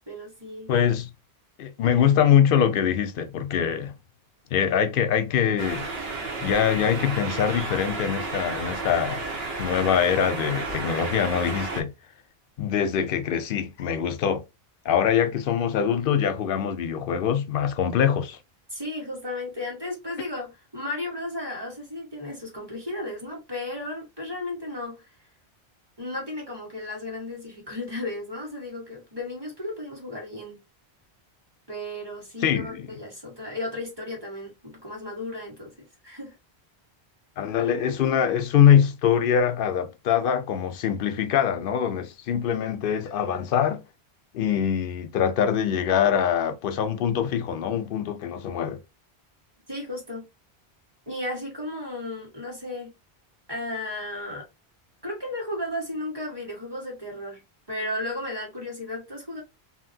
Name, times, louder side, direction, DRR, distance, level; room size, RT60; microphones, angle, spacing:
voice 1, 0.1-0.7 18.7-25.1 26.0-30.6 31.7-36.3 49.7-50.3 51.1-52.9 53.5-54.5 55.0-57.4 57.7-59.4, left 1 dB, 25° right, 1.5 m, -34 dB
voice 2, 0.7-1.1 1.6-3.9 4.5-6.1 6.4-9.2 9.6-11.9 12.6-14.4 14.8-18.4 32.4-32.9 37.4-43.8 44.3-48.8, left 8 dB, 65° left, 0.7 m, -23 dB
sound 1, 5.6-11.8, right 3 dB, 70° right, 1.1 m, -32 dB
2.8 x 2.8 x 2.6 m
omnidirectional pair, 1.1 m